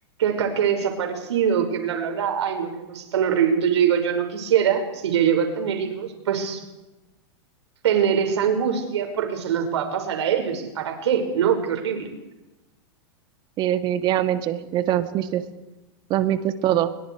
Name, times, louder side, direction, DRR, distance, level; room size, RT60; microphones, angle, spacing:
voice 1, 0.2-6.6 7.8-12.1, right 8 dB, 85° right, 4 dB, 6.0 m, -23 dB
voice 2, 13.6-15.4 16.1-16.9, right 12 dB, 35° right, 9 dB, 1.9 m, -23 dB
30.0 x 23.0 x 4.9 m, 1.0 s
supercardioid pair, 145°, 14 cm